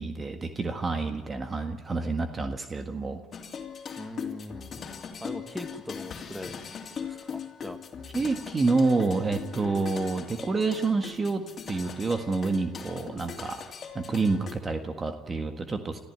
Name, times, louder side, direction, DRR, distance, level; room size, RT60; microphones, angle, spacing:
voice 1, 0.0-3.2 8.1-13.6 13.9-16.0, right 3 dB, 30° right, 6 dB, 1.6 m, -28 dB
sound 1, 3.3-14.6, left 6 dB, 45° left, 2.8 m, -40 dB
voice 2, 4.0-4.7 5.2-6.7 7.0-7.8, left 1 dB, 5° left, 5 dB, 2.3 m, -40 dB
24.5 x 14.5 x 9.6 m, 1.3 s
supercardioid pair, 80°, 0 cm